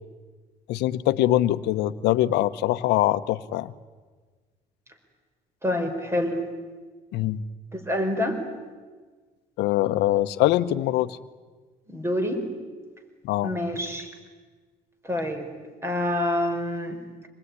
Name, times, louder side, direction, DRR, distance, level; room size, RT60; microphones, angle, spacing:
voice 1, 0.7-3.7 7.1-7.4 9.6-11.2 13.2-13.5, left 14 dB, 85° left, 13 dB, 1.0 m, -23 dB
voice 2, 5.6-6.4 7.7-8.4 11.9-12.4 13.4-14.1 15.0-15.5 15.8-17.0, left 1 dB, 15° right, 6 dB, 4.7 m, -27 dB
26.5 x 20.0 x 9.8 m, 1.4 s
cardioid pair, 110°, 17 cm